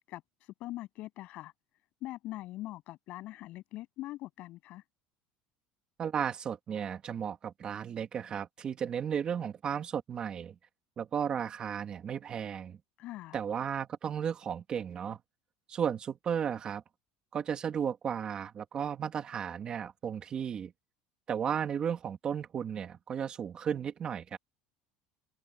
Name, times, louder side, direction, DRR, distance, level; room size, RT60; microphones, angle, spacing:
voice 1, 0.0-1.5 2.0-4.8 13.0-13.4, left 16 dB, 50° left, 7.8 m, -42 dB
voice 2, 6.0-10.5 11.0-12.8 13.3-15.2 15.7-16.8 17.3-20.7 21.3-24.4, right 8 dB, 30° right, 2.4 m, -34 dB
cardioid pair, 155°, 3 cm